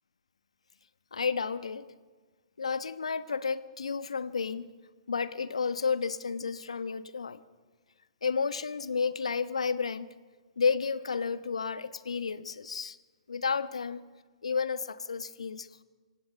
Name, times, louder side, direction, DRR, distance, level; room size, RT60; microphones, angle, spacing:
voice 1, 1.1-1.9 2.6-4.7 5.1-7.4 8.2-10.1 10.6-13.0 13.3-14.0 14.4-15.8, left 5 dB, 75° left, 13 dB, 1.1 m, -31 dB
27.5 x 17.0 x 6.9 m, 1.4 s
figure-of-eight pair, 120°, 3 cm